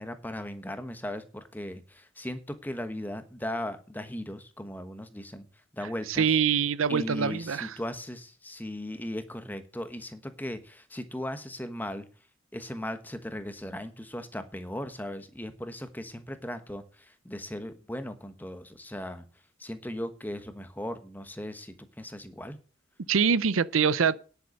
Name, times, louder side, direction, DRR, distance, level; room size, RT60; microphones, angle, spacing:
voice 1, 0.0-5.5 5.7-6.3 6.9-12.1 12.5-19.2 19.6-22.6, left 1 dB, 10° left, 1.2 m, -37 dB
voice 2, 6.1-7.7 23.1-24.2, right 6 dB, 85° right, 0.6 m, -24 dB
10.5 x 8.1 x 6.5 m
head